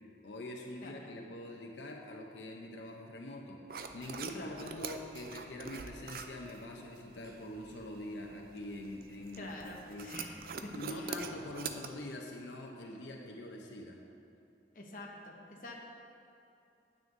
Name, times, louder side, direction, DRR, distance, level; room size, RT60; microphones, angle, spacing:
voice 1, 0.2-3.6 3.9-10.1 10.7-14.0, left 1 dB, 90° left, 1 dB, 0.7 m, -44 dB
sound 1, 3.7-11.9, right 5 dB, 55° right, 0.4 m, -45 dB
voice 2, 4.4-4.7 9.3-10.3 10.6-11.1 14.7-15.8, left 2 dB, 50° left, -1 dB, 1.0 m, -47 dB
9.3 x 8.9 x 2.6 m, 2.6 s
head